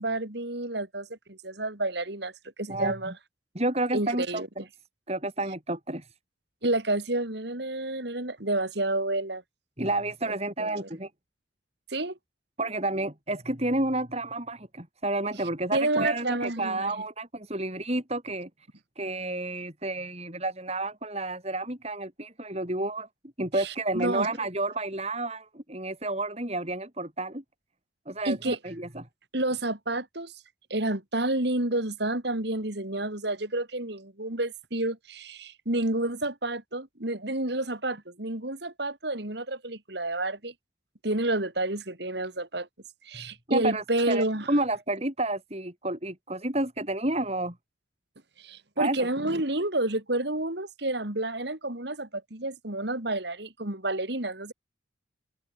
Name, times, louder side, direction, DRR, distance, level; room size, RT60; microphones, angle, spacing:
voice 1, 0.0-2.3 2.6-3.1 3.9-4.5 6.6-9.4 10.3-10.4 10.6-10.9 11.9-12.2 15.7-16.9 23.6-24.3 28.2-28.6 29.3-30.3 30.7-40.5 41.0-42.7 43.0-44.5 48.4-54.5, right 2 dB, 55° right, 3.1 m, -30 dB
voice 2, 3.5-4.6 5.1-6.1 9.8-11.1 12.6-18.5 19.0-23.1 23.4-27.4 28.1-29.0 43.1-47.6 48.8-49.1, right 2 dB, 30° right, 5.7 m, -30 dB
head